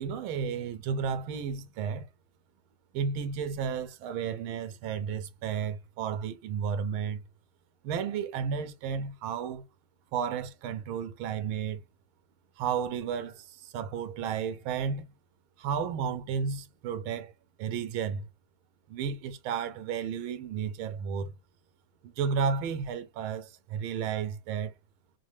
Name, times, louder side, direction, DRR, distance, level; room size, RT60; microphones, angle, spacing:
voice 1, 0.0-2.1 2.9-7.2 7.8-9.6 10.1-11.8 12.6-15.1 15.6-17.3 17.6-18.3 18.9-21.3 22.0-24.7, right 7 dB, 80° right, 1.5 m, -32 dB
5.2 x 2.1 x 2.9 m
omnidirectional pair, 2.2 m